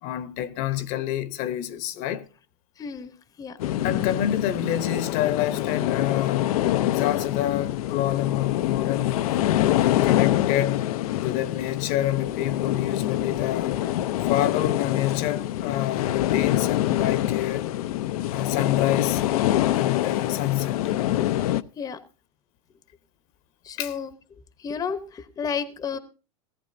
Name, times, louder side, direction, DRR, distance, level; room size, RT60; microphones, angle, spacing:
voice 1, 0.0-2.2 3.8-6.6 6.9-9.2 9.6-10.9 11.2-13.8 14.3-17.7 18.3-19.3 19.8-20.9 23.8-23.9, left 12 dB, 50° left, 1.0 m, -27 dB
voice 2, 2.8-3.6 21.8-22.0 23.6-24.1 24.6-26.0, left 6 dB, 20° left, 0.9 m, -32 dB
sound 1, 3.6-21.6, left 13 dB, 85° left, 0.7 m, -25 dB
18.0 x 15.0 x 2.7 m
supercardioid pair, 145°, 18 cm